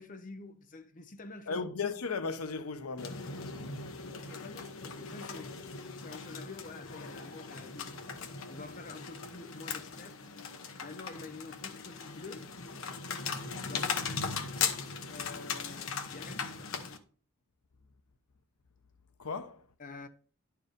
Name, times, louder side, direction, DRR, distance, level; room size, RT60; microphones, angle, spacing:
voice 1, 0.0-1.6 4.1-5.6 6.0-8.2 8.5-10.2 10.8-12.5 13.6-14.5 15.1-16.7 19.8-20.1, left 3 dB, 35° left, 0.8 m, -48 dB
voice 2, 1.5-3.3 19.2-19.7, left 4 dB, 90° left, 0.8 m, -36 dB
sound 1, 3.0-17.0, left 5 dB, 65° left, 1.1 m, -39 dB
11.0 x 4.7 x 5.1 m
head